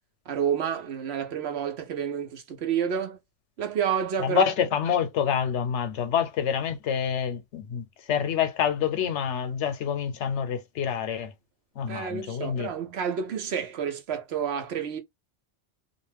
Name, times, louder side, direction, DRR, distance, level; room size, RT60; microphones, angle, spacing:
voice 1, 0.3-3.2 3.6-4.4 11.9-15.0, right 8 dB, 70° right, 0.9 m, -29 dB
voice 2, 4.2-11.3 11.8-12.7, left 8 dB, 85° left, 1.0 m, -27 dB
2.4 x 2.2 x 3.2 m
omnidirectional pair, 1.2 m